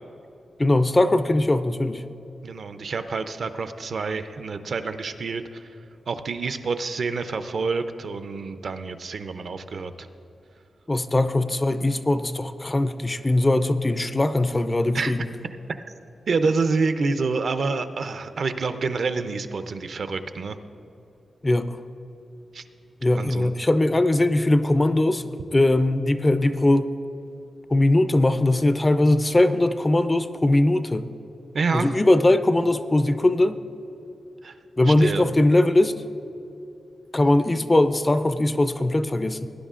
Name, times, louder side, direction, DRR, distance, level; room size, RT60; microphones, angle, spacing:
voice 1, 0.6-2.0 10.9-15.3 21.4-21.8 23.0-26.9 27.7-31.1 31.7-33.6 34.8-35.9 37.1-39.5, left 1 dB, 20° left, 11 dB, 0.3 m, -20 dB
voice 2, 2.4-5.7 6.1-10.1 14.9-15.1 16.3-20.6 22.5-22.6 23.2-23.5 31.5-31.9 34.4-34.5 34.9-35.2, right 4 dB, 55° right, 9 dB, 0.5 m, -27 dB
18.0 x 10.5 x 2.5 m, 2.9 s
wide cardioid pair, 170°, 0 cm